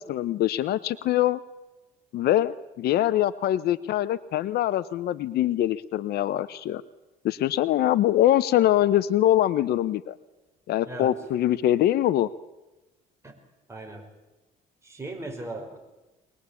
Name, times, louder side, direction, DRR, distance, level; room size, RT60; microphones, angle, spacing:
voice 1, 0.0-1.4 2.1-6.8 7.2-10.2 10.7-12.3, left 13 dB, 70° left, 16 dB, 0.8 m, -23 dB
voice 2, 10.8-11.2 13.2-13.3 13.7-14.1 14.8-15.8, right 2 dB, 15° right, 2 dB, 5.4 m, -37 dB
23.0 x 20.0 x 8.4 m, 1.0 s
cardioid pair, 110°, 17 cm